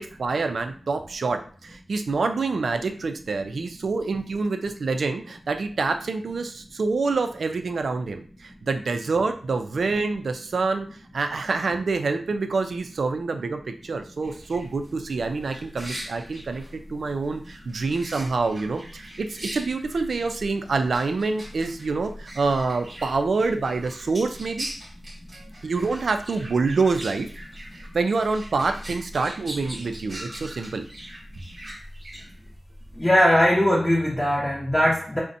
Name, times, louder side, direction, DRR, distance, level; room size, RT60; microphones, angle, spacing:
voice 1, 0.0-24.7 25.3-27.3 27.8-30.8, right 4 dB, 75° right, 7 dB, 0.3 m, -26 dB
sound 1, 14.2-33.0, equal, 40° right, 0.8 m, -41 dB
voice 2, 33.0-35.2, equal, 15° left, -4 dB, 0.6 m, -20 dB
2.5 x 2.1 x 2.6 m, 0.43 s
cardioid pair, 55°, 0 cm